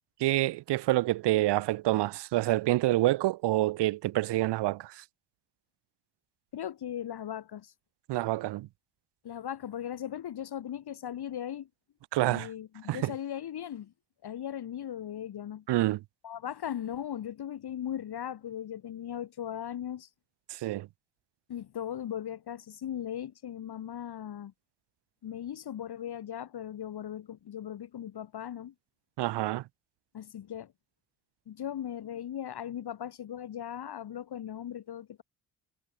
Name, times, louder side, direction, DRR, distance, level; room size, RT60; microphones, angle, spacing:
voice 1, 0.2-5.0 8.1-8.7 12.1-12.5 12.9-13.1 15.7-16.0 20.5-20.9 29.2-29.6, right 16 dB, 55° right, 0.9 m, -27 dB
voice 2, 6.5-7.7 9.2-11.7 12.3-13.9 14.2-15.6 16.2-20.1 21.5-24.5 25.2-28.7 30.1-30.7 31.5-35.2, left 10 dB, 50° left, 2.3 m, -38 dB
hypercardioid pair, 50°, 48 cm